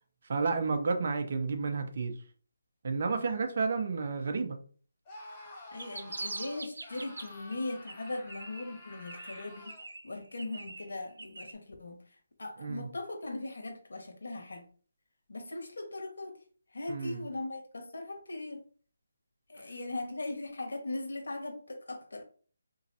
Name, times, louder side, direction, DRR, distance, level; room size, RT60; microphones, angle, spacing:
voice 1, 0.3-2.2 2.8-4.6 12.6-12.8 16.9-17.2, right 4 dB, 45° right, 0.6 m, -31 dB
Screaming, 5.0-9.9, left 1 dB, 20° left, 0.8 m, -50 dB
sound 1, 5.6-7.5 7.9-8.8 9.1-11.5, right 2 dB, 90° right, 0.6 m, -43 dB
voice 2, 5.7-9.7 10.0-14.7 15.3-16.4 16.7-18.6 19.5-22.2, left 2 dB, 75° left, 1.3 m, -39 dB
3.9 x 3.0 x 2.7 m
hypercardioid pair, 170°, 0 cm